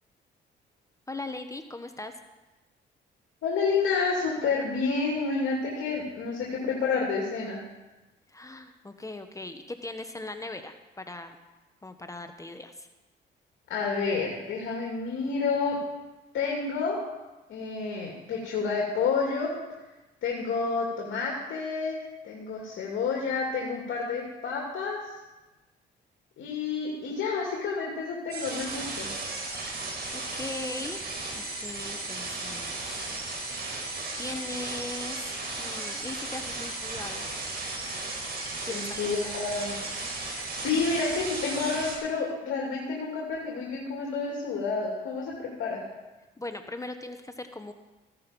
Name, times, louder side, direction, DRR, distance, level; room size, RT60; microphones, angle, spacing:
voice 1, 1.1-2.1 8.3-11.4 11.8-12.9 29.8-31.1 31.3-33.0 34.2-37.2 38.7-39.0 46.4-47.7, left 2 dB, 15° left, 7 dB, 1.0 m, -39 dB
voice 2, 3.4-7.6 13.7-15.8 16.3-17.0 17.5-19.5 20.2-22.0 22.2-25.1 26.4-29.1 38.7-39.8 40.3-45.8, left 4 dB, 75° left, -2 dB, 2.8 m, -29 dB
sound 1, 28.3-42.0, right 3 dB, 55° right, 4.6 m, -35 dB
15.5 x 10.5 x 5.3 m, 1.1 s
cardioid pair, 90°, 20 cm